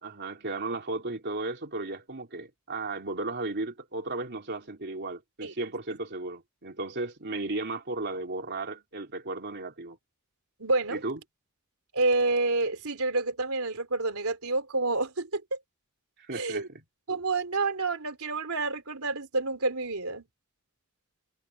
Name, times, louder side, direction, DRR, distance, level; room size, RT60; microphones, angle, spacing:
voice 1, 0.0-10.0 10.9-11.2 16.2-16.8, right 2 dB, 55° right, 3.2 m, -35 dB
voice 2, 10.6-11.0 11.9-15.6 16.3-16.7 17.1-20.2, right 3 dB, 80° right, 3.4 m, -28 dB
head